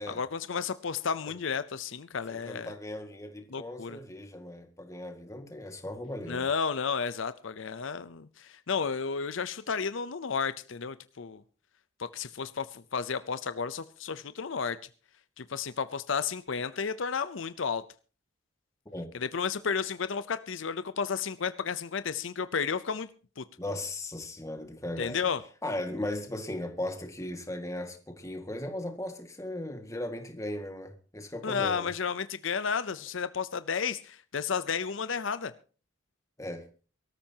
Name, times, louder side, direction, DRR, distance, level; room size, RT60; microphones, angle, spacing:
voice 1, 0.1-2.7 3.5-4.0 6.3-11.4 12.0-14.8 15.4-17.8 19.1-23.1 23.4-23.5 25.0-25.4 31.4-35.5, left 6 dB, 75° left, 0.6 m, -32 dB
voice 2, 2.4-6.5 18.9-19.1 23.6-25.3 25.6-31.9 36.4-36.7, left 1 dB, 15° left, 1.9 m, -37 dB
23.0 x 13.5 x 2.9 m
head